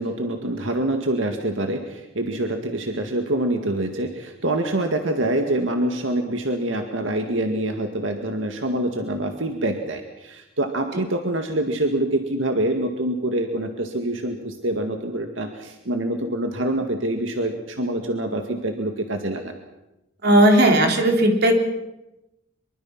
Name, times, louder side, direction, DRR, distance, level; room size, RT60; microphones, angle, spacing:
voice 1, 0.0-19.5, right 1 dB, 85° right, 5 dB, 2.0 m, -25 dB
voice 2, 20.2-21.5, right 1 dB, 60° right, 4 dB, 3.5 m, -16 dB
24.5 x 23.5 x 6.0 m, 0.95 s
head